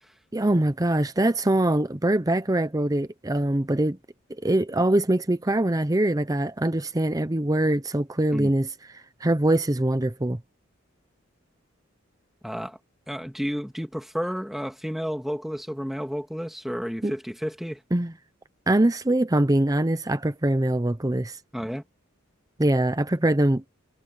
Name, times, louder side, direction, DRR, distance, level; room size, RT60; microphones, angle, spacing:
voice 1, 0.3-4.0 4.4-8.7 9.2-10.4 17.0-17.1 17.9-18.1 18.7-21.4 22.6-23.6, right 1 dB, 15° right, 0.7 m, -23 dB
voice 2, 12.4-12.8 13.1-17.8 21.5-21.8, equal, ahead, 2.1 m, -31 dB
head